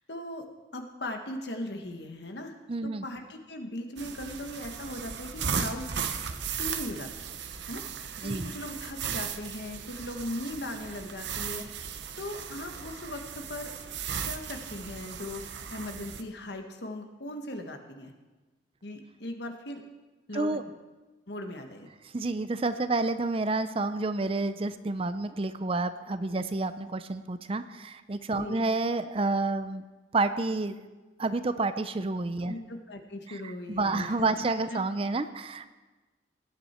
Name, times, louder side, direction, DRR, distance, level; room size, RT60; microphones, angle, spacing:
voice 1, 0.1-0.5 0.7-2.5 2.8-5.9 6.6-7.4 7.7-7.8 8.2-11.9 12.2-13.7 14.2-18.1 18.8-19.8 20.3-20.7 21.3-21.9 28.4-28.6 32.4-34.3 34.7-34.8, left 1 dB, 65° left, 5 dB, 1.4 m, -39 dB
voice 2, 2.7-3.0 8.2-8.5 20.3-20.6 22.1-29.8 30.1-30.8 31.2-32.5 33.3-33.4 33.7-35.7, right 3 dB, 30° right, 12 dB, 0.5 m, -29 dB
sound 1, 4.0-16.2, right 7 dB, 70° right, 0.8 m, -36 dB
18.0 x 9.9 x 4.4 m, 1.2 s
head